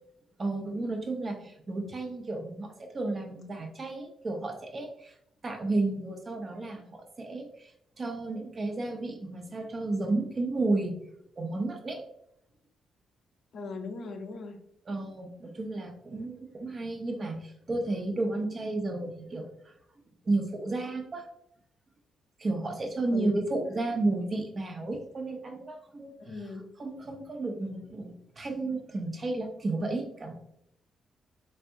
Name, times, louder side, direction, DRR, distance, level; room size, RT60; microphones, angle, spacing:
voice 1, 0.4-5.1 5.4-11.0 11.4-12.0 14.9-19.7 20.2-21.3 22.4-26.5 26.8-30.3, right 2 dB, 40° right, 3 dB, 0.9 m, -32 dB
voice 2, 13.5-14.6 23.0-23.4 26.2-26.7, left 4 dB, 60° left, 6 dB, 0.6 m, -38 dB
4.5 x 3.3 x 2.6 m, 0.77 s
cardioid pair, 70°, 0 cm